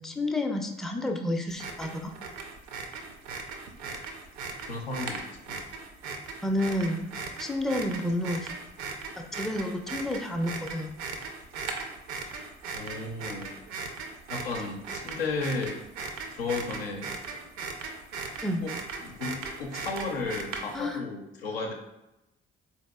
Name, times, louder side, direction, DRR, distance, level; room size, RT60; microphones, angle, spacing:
voice 1, 0.0-2.1 6.4-8.5 9.2-10.9 18.4-18.6 20.7-21.0, left 1 dB, ahead, 3 dB, 0.4 m, -30 dB
sound 1, 1.5-21.0, right 4 dB, 60° right, 0.5 m, -38 dB
voice 2, 4.7-5.6 12.7-13.6 14.3-15.8 16.3-17.1 18.6-18.7 19.0-21.7, left 3 dB, 85° left, 1 dB, 0.5 m, -34 dB
3.9 x 2.8 x 2.2 m, 0.92 s
figure-of-eight pair, 45°, 29 cm